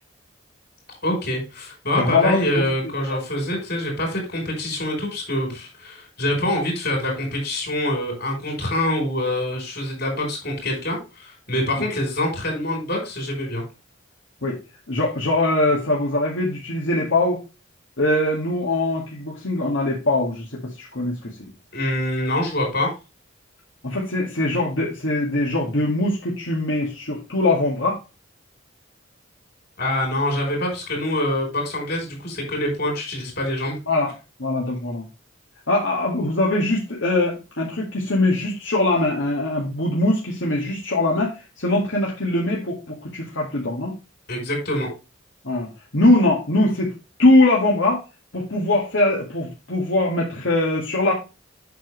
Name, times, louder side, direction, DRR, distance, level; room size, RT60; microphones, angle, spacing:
voice 1, 1.0-13.6 21.7-22.9 29.8-33.8 44.3-44.9, left 1 dB, 50° left, 1 dB, 4.0 m, -25 dB
voice 2, 2.0-3.2 14.4-14.6 14.9-17.4 18.0-21.5 23.8-28.0 33.9-34.1 34.4-35.1 35.7-43.9 45.4-45.7 45.9-46.9 47.2-48.0 48.3-51.1, left 2 dB, 75° left, -3 dB, 2.0 m, -22 dB
8.2 x 6.3 x 3.2 m, 0.29 s
head